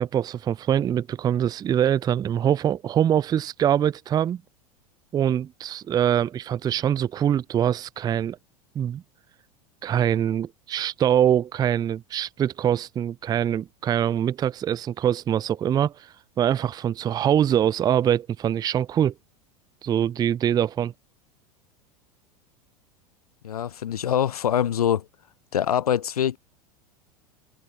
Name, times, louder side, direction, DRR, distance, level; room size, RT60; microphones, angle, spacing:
voice 1, 0.0-4.4 5.1-8.4 8.8-9.0 9.8-19.1 19.8-20.9, right 10 dB, 20° right, 0.4 m, -23 dB
voice 2, 23.4-25.1 25.5-26.4, left 9 dB, 75° left, 0.8 m, -24 dB
figure-of-eight pair, 85°, 19 cm